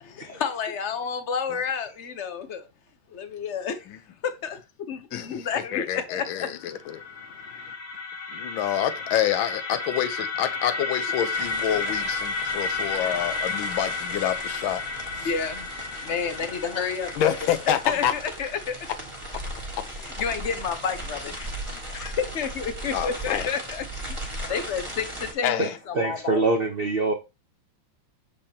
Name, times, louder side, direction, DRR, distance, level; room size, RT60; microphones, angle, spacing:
voice 1, 0.0-2.7 3.1-3.9 4.2-4.6 4.9-6.5 7.3-7.7 15.2-17.3 17.9-18.8 20.0-21.3 21.7-26.4, left 6 dB, 65° left, 0.7 m, -30 dB
voice 2, 5.1-7.0 8.3-14.8 15.2-15.3 17.2-18.1 21.4-21.5 22.9-23.5 25.4-25.7, left 10 dB, 90° left, 1.5 m, -27 dB
sound 1, 6.6-18.6, left 4 dB, 45° left, 1.5 m, -32 dB
sound 2, 11.3-25.3, right 1 dB, 15° right, 1.4 m, -38 dB
voice 3, 25.9-27.1, right 3 dB, 75° right, 0.5 m, -24 dB
6.9 x 5.2 x 2.8 m
omnidirectional pair, 2.1 m